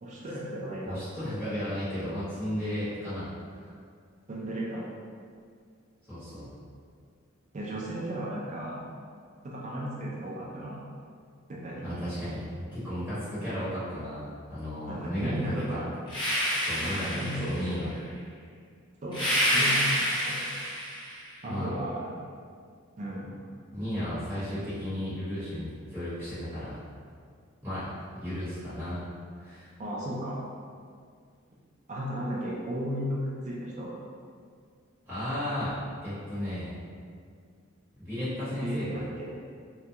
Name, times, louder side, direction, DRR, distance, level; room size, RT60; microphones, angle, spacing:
voice 1, 0.0-1.0 4.3-4.9 7.5-8.8 9.4-10.8 11.5-12.0 14.9-15.8 16.8-17.8 19.0-20.4 21.4-22.1 23.0-23.4 29.8-30.4 31.9-34.0 38.6-39.3, equal, 35° right, -5 dB, 0.4 m, -34 dB
voice 2, 0.8-3.7 6.1-6.5 11.8-15.9 16.6-17.9 21.5-21.7 23.7-26.8 27.6-27.9 28.2-29.0 29.4-29.7 35.1-35.7 36.0-36.7 38.0-39.0, equal, 10° right, -14 dB, 1.2 m, -34 dB
sound 1, 16.1-17.7 19.1-21.2, equal, 25° left, 0.5 m, -28 dB
2.3 x 2.2 x 2.7 m, 2.1 s
head